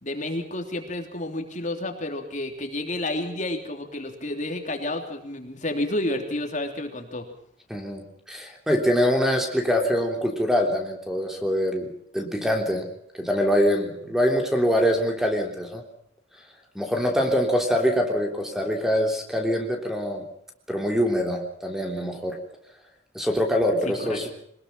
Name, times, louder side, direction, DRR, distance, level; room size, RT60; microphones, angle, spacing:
voice 1, 0.0-7.2 23.8-24.3, left 1 dB, 40° left, 4 dB, 3.3 m, -30 dB
voice 2, 7.7-12.9 13.1-15.8 16.8-20.2 20.7-22.4 23.1-24.3, equal, ahead, 3 dB, 3.4 m, -24 dB
24.0 x 20.5 x 5.8 m, 0.71 s
head